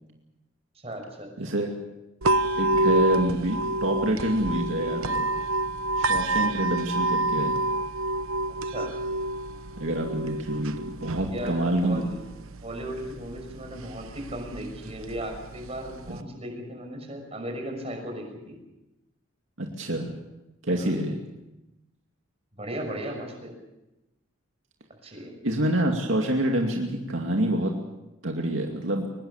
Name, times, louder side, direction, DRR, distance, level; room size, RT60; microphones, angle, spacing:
voice 1, 0.8-1.3 8.7-8.9 11.2-12.2 12.6-18.6 20.7-20.9 22.5-23.5 25.0-25.3, right 1 dB, 30° right, 3 dB, 6.0 m, -36 dB
voice 2, 1.4-1.7 2.6-5.3 6.0-7.6 9.8-12.0 16.1-16.2 19.6-20.2 20.6-21.2 25.4-27.7 28.2-29.1, right 1 dB, 70° right, 1 dB, 2.4 m, -27 dB
sound 1, 2.2-16.2, right 2 dB, 85° right, 1.0 m, -28 dB
23.5 x 20.5 x 7.3 m, 0.96 s
head